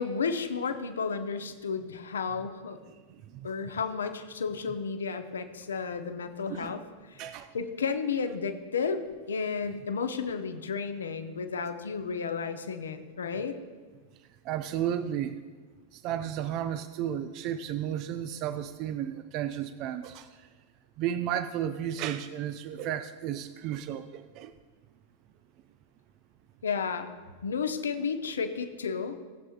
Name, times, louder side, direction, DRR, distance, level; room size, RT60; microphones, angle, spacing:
voice 1, 0.0-2.8 3.4-6.8 7.1-13.5 26.6-27.1 27.4-29.2, left 5 dB, 70° left, 8 dB, 0.8 m, -32 dB
voice 2, 3.1-3.5 6.5-6.7 7.2-7.5 14.4-15.4 15.9-20.3 21.0-24.5, right 10 dB, 40° right, 10 dB, 0.4 m, -33 dB
18.5 x 7.7 x 2.5 m, 1.4 s
figure-of-eight pair, 90°, 0 cm